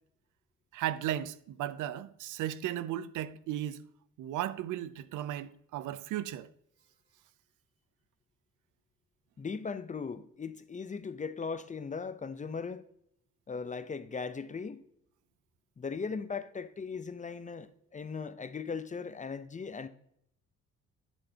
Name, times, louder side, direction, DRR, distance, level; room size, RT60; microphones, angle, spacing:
voice 1, 0.7-3.8 4.2-6.5, right 12 dB, 85° right, 0.6 m, -35 dB
voice 2, 9.4-12.9 13.5-14.8 15.8-19.9, left 5 dB, 25° left, 0.6 m, -38 dB
11.0 x 6.4 x 2.8 m
cardioid pair, 90°, 30 cm